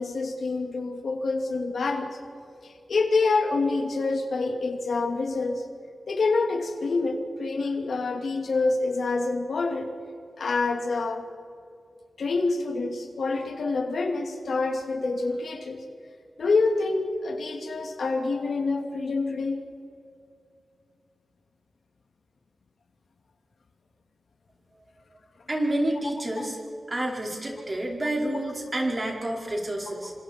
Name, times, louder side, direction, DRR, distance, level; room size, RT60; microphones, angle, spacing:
voice 1, 0.0-2.2 2.6-5.6 6.1-9.9 10.4-11.3 12.2-15.9 16.4-19.6 26.4-26.5, left 3 dB, 85° left, 4 dB, 2.6 m, -27 dB
voice 2, 25.5-26.6 26.9-30.1, right 1 dB, 30° right, -1 dB, 5.1 m, -29 dB
28.0 x 26.0 x 4.6 m, 2.4 s
wide cardioid pair, 90°, 0 cm